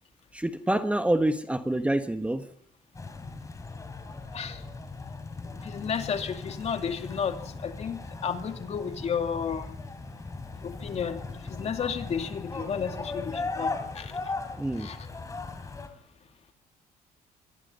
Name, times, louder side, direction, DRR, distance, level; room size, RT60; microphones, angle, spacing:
voice 1, 0.3-2.5 14.6-14.9, right 1 dB, 10° right, 9 dB, 1.3 m, -26 dB
sound 1, 2.9-15.9, left 3 dB, 20° left, 3.5 m, -38 dB
voice 2, 5.6-9.7 10.6-14.1 14.8-15.0, left 7 dB, 45° left, 6 dB, 2.5 m, -32 dB
27.0 x 22.0 x 5.6 m, 0.66 s
cardioid pair, 95°, 15 cm